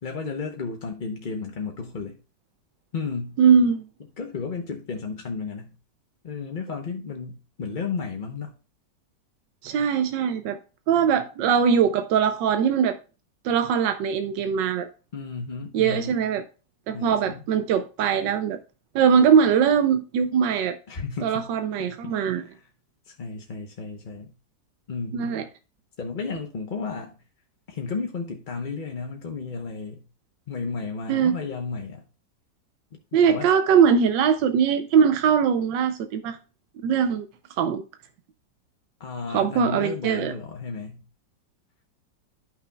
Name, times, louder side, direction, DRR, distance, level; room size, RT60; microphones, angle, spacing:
voice 1, 0.0-2.2 2.9-3.4 4.2-5.7 6.2-8.5 15.1-16.2 16.9-17.4 20.9-21.5 21.8-22.5 23.1-24.3 24.9-25.4 26.0-27.2 27.7-30.0 30.5-32.1 33.3-33.5 39.0-41.0, left 4 dB, 40° left, 0.7 m, -33 dB
voice 2, 3.4-3.9 9.6-10.6 10.9-13.0 13.4-14.9 15.7-16.4 16.9-18.6 18.9-20.8 21.2-22.4 25.1-25.4 31.1-31.3 33.1-36.4 36.8-37.3 37.6-37.8 39.3-40.3, right 7 dB, 80° right, 1.4 m, -21 dB
13.0 x 6.0 x 2.3 m
omnidirectional pair, 2.0 m